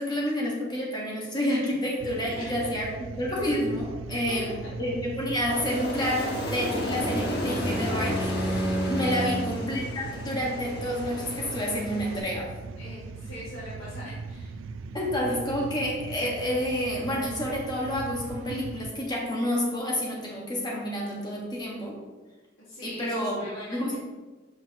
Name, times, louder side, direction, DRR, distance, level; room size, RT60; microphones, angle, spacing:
voice 1, 0.0-2.9 3.2-4.5 4.8-12.5 14.9-21.9 22.8-23.4 23.7-23.9, equal, 20° left, -3 dB, 1.6 m, -29 dB
sound 1, 2.0-18.9, right 4 dB, 80° right, 0.4 m, -40 dB
voice 2, 2.3-2.9 4.1-4.7 9.0-9.4 12.8-14.6 22.6-23.9, left 1 dB, 85° left, -9 dB, 2.0 m, -42 dB
Aircraft, 5.5-12.2, equal, 55° left, 1.3 m, -33 dB
Bowed string instrument, 6.5-9.7, equal, 10° right, 0.5 m, -31 dB
7.5 x 5.7 x 3.0 m, 1.2 s
head